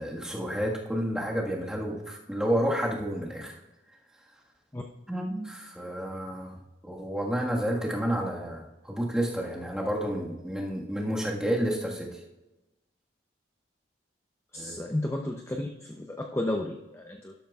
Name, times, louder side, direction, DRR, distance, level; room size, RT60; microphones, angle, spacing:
voice 1, 0.0-3.6 5.1-6.6 6.8-12.2 14.5-14.8, equal, 5° right, -3 dB, 1.5 m, -30 dB
voice 2, 14.5-17.4, left 1 dB, 15° left, 2 dB, 0.5 m, -33 dB
12.5 x 11.5 x 2.3 m, 1.0 s
head